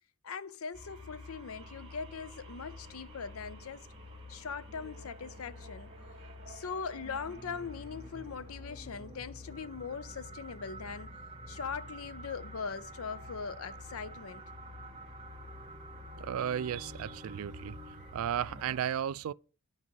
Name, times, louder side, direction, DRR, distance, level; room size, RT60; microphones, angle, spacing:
voice 1, 0.2-3.9 4.3-5.9 6.5-11.2 11.5-14.5, left 5 dB, 90° left, 0.6 m, -41 dB
sound 1, 0.7-18.8, left 1 dB, 30° right, 1.7 m, -48 dB
voice 2, 16.2-17.8 18.1-19.3, right 9 dB, 80° right, 0.3 m, -34 dB
12.0 x 4.9 x 3.1 m
head